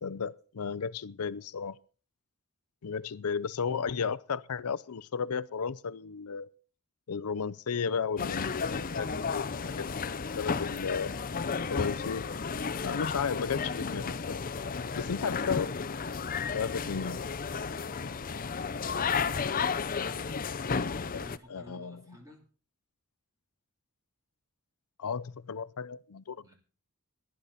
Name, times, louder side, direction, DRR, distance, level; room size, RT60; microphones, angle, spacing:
voice 1, 0.0-1.8 2.8-6.5 7.1-9.9 10.3-11.1 11.7-12.3 12.8-14.4 15.0-15.7 16.5-17.2 21.1-21.2 21.5-22.0 25.0-26.4, left 6 dB, 85° left, 0.6 m, -34 dB
sound 1, 8.2-21.4, left 5 dB, 40° left, 0.6 m, -33 dB
voice 2, 21.0-22.4 26.4-26.5, equal, 15° right, 3.1 m, -54 dB
18.5 x 10.5 x 4.1 m
head